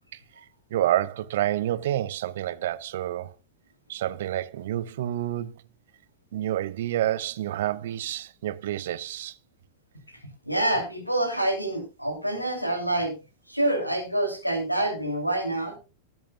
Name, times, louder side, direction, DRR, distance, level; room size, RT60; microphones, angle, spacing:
voice 1, 0.7-3.3 3.9-5.6 6.3-9.4, right 12 dB, 55° right, 0.8 m, -28 dB
voice 2, 10.5-13.1 13.5-15.8, right 1 dB, 90° left, 2.9 m, -26 dB
19.5 x 8.7 x 2.3 m
figure-of-eight pair, 90°, 0 cm